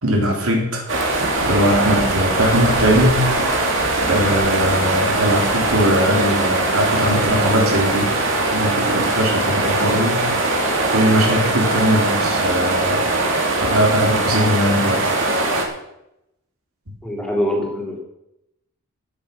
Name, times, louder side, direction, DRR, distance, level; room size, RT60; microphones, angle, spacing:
voice 1, 0.0-8.1 8.5-10.3 10.9-13.1 13.6-15.4, equal, 80° right, 1 dB, 3.5 m, -20 dB
sound 1, 0.9-15.7, right 2 dB, 60° right, 2.6 m, -20 dB
voice 2, 17.0-18.0, equal, 5° left, -2 dB, 3.1 m, -23 dB
13.0 x 9.4 x 5.9 m, 0.84 s
head